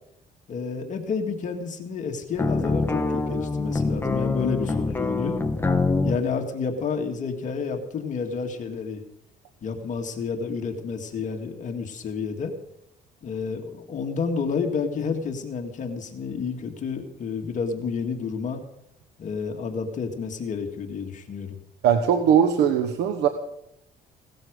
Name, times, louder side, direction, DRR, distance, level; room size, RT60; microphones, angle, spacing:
voice 1, 0.5-5.4 6.0-9.0 9.6-12.5 13.2-18.6 19.2-21.6, left 5 dB, 50° left, 4 dB, 2.0 m, -30 dB
sound 1, 2.4-6.2, left 3 dB, 15° left, 1.3 m, -25 dB
voice 2, 21.8-23.3, right 8 dB, 80° right, 7 dB, 1.2 m, -20 dB
17.5 x 13.0 x 5.2 m, 0.78 s
cardioid pair, 110°, 17 cm